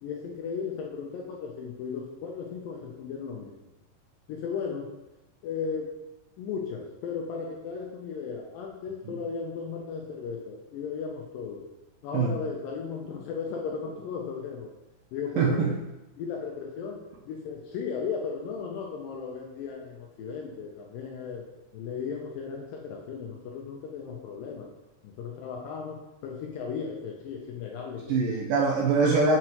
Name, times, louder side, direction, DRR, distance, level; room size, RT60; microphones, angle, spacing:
voice 1, 0.0-3.6 4.3-4.9 5.4-5.9 6.4-11.6 12.0-14.7 15.1-15.7 16.2-21.5 21.7-24.7 25.0-28.2, left 6 dB, 80° left, 0 dB, 2.1 m, -36 dB
voice 2, 15.4-15.7 28.1-29.4, right 4 dB, 80° right, -1 dB, 2.1 m, -23 dB
7.6 x 5.9 x 3.0 m, 1.0 s
omnidirectional pair, 4.5 m